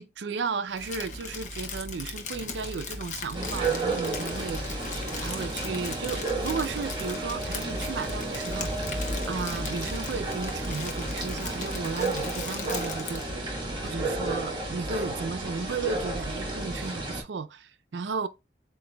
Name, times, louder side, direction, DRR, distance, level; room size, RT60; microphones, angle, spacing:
voice 1, 0.0-4.6 5.2-8.9 9.3-13.2 13.8-18.3, right 5 dB, 80° right, 0.4 m, -34 dB
Crumpling crinkling, 0.7-13.3, left 4 dB, 45° left, 0.8 m, -38 dB
sound 1, 3.3-17.2, right 2 dB, 25° right, 1.2 m, -32 dB
7.7 x 2.7 x 2.2 m
head